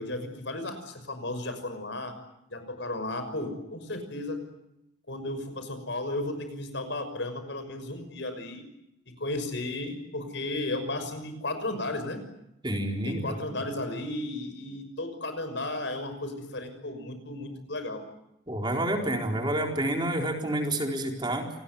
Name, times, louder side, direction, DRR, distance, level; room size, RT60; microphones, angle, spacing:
voice 1, 0.0-2.1 2.5-4.4 5.1-8.6 9.2-12.2 13.1-18.0, left 2 dB, 65° left, 8 dB, 6.1 m, -34 dB
voice 2, 12.6-13.4 18.5-21.5, right 1 dB, 25° right, 2 dB, 4.2 m, -29 dB
28.0 x 20.0 x 9.9 m, 0.85 s
head